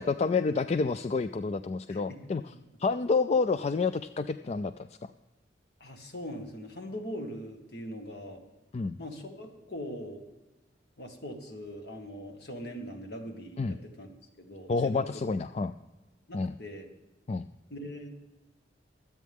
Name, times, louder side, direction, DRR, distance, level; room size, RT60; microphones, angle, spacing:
voice 1, 0.0-2.4 2.8-5.1 8.7-9.0 13.6-13.8 14.7-15.7 16.3-16.5 17.3-17.4, left 4 dB, 35° left, 11 dB, 0.3 m, -29 dB
voice 2, 5.8-8.4 9.0-10.2 11.0-14.1 14.4-15.2 16.3-16.9 17.7-18.1, equal, 60° left, 4 dB, 1.8 m, -41 dB
23.5 x 8.4 x 3.6 m, 1.1 s
head